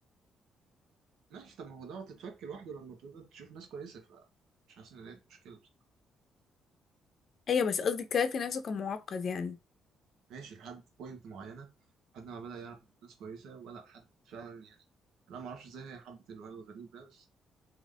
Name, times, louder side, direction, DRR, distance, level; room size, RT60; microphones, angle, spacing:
voice 1, 1.3-4.3 4.7-5.6 10.3-11.7 12.1-14.8 15.3-17.3, right 5 dB, 80° right, 1.4 m, -46 dB
voice 2, 7.5-9.6, left 6 dB, 55° left, 0.7 m, -31 dB
3.8 x 3.0 x 3.5 m
cardioid pair, 90°, 0 cm